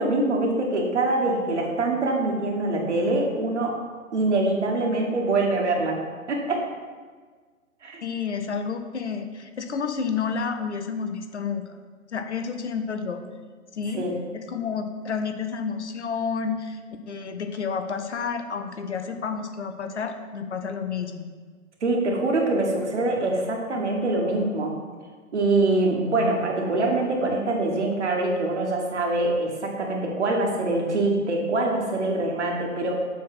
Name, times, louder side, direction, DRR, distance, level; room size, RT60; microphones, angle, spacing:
voice 1, 0.0-3.8 4.1-6.0 6.3-6.7 7.8-8.0 13.9-14.1 21.8-24.7 25.3-33.1, right 2 dB, 55° right, 0 dB, 1.6 m, -24 dB
voice 2, 8.0-11.7 12.1-13.2 13.7-14.1 14.3-16.8 17.1-21.3, left 6 dB, 55° left, 7 dB, 0.7 m, -30 dB
7.2 x 4.3 x 5.7 m, 1.5 s
figure-of-eight pair, 130°, 42 cm